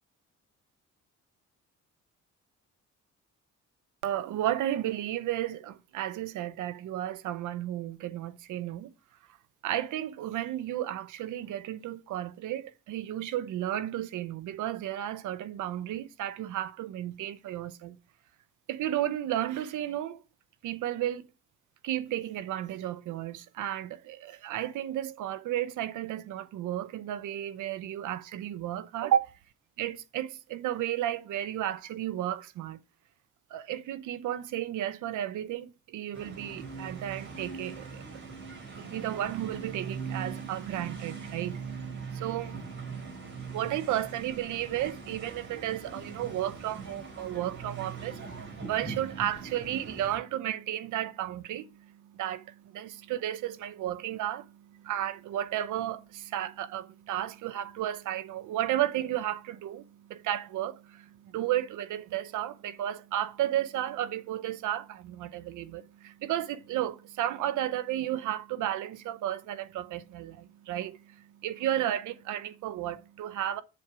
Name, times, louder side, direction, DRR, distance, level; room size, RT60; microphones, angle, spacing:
voice 1, 4.0-8.9 9.6-18.0 18.7-20.2 20.6-21.2 21.8-29.4 29.8-32.8 33.5-38.2 38.8-73.6, right 12 dB, 80° right, 0.8 m, -33 dB
sound 1, 36.1-50.2, right 5 dB, 40° right, 5.5 m, -41 dB
7.8 x 7.3 x 4.8 m
cardioid pair, 90°, 30 cm